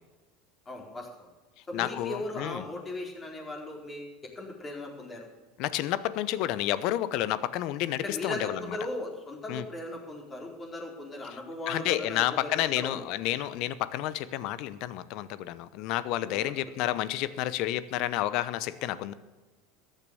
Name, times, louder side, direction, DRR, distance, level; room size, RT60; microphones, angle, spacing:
voice 1, 0.7-1.3 1.7-5.3 8.0-13.1 16.3-16.5, left 2 dB, 25° left, 0 dB, 4.4 m, -38 dB
voice 2, 1.7-2.6 5.6-8.8 9.5-9.6 11.7-19.1, left 13 dB, 60° left, 17 dB, 0.8 m, -30 dB
14.0 x 9.2 x 6.9 m, 1.2 s
hypercardioid pair, 90°, 0 cm